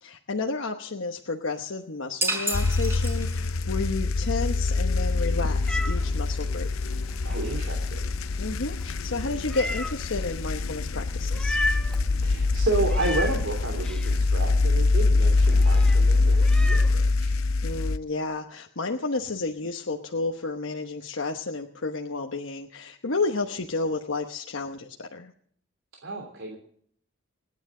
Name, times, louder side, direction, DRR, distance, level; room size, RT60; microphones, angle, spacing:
voice 1, 0.0-6.7 8.4-11.6 17.6-25.3, left 3 dB, 70° left, 2 dB, 1.1 m, -31 dB
sound 1, 2.2-3.7, right 1 dB, 10° right, 4.6 m, -30 dB
sound 2, 2.5-18.0, left 3 dB, 90° left, 0.6 m, -24 dB
Meow, 4.9-17.0, left 1 dB, 5° left, 1.1 m, -37 dB
voice 2, 7.2-8.0 12.2-17.3 26.0-26.6, right 2 dB, 75° right, 2 dB, 3.1 m, -31 dB
29.0 x 9.9 x 3.8 m, 0.62 s
head